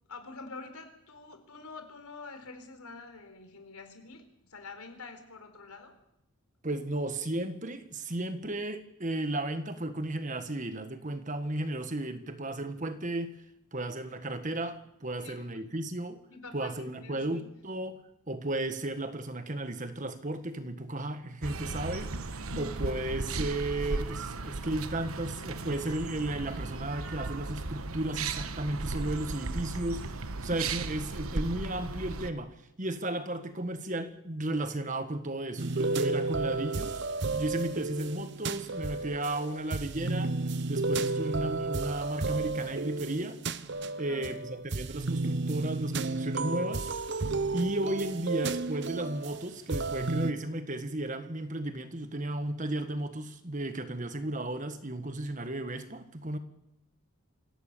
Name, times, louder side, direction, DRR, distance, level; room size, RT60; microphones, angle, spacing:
voice 1, 0.1-6.0 15.2-15.6 16.3-17.4 22.5-22.8 44.0-44.3, left 3 dB, 85° left, 4.3 m, -47 dB
voice 2, 6.6-13.4 13.7-16.2 16.5-40.4 40.7-43.4 44.0-46.9 47.5-56.4, right 1 dB, 35° right, 1.6 m, -34 dB
sound 1, 21.4-32.3, right 3 dB, 75° right, 1.2 m, -36 dB
sound 2, 35.6-50.3, right 3 dB, 50° right, 0.8 m, -32 dB
25.5 x 17.0 x 6.9 m
head